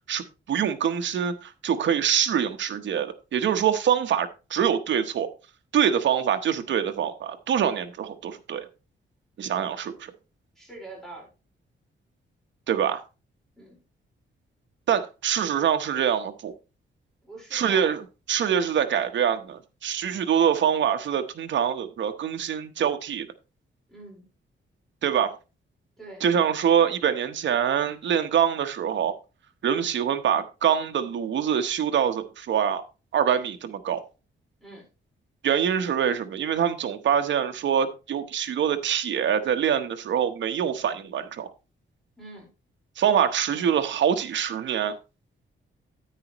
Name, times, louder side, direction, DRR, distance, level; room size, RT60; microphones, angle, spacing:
voice 1, 0.1-5.3 5.7-8.7 9.4-10.1 12.7-13.0 14.9-16.5 17.5-23.3 25.0-25.3 26.2-29.2 29.6-32.8 33.1-34.0 35.4-41.5 43.0-45.0, right 8 dB, 65° right, 1.0 m, -25 dB
voice 2, 10.6-11.3 13.6-13.8 17.2-17.9 23.9-24.2 26.0-26.2 34.6-34.8 42.2-42.5, right 2 dB, ahead, 4.5 m, -43 dB
10.0 x 9.0 x 3.0 m
wide cardioid pair, 170°, 20 cm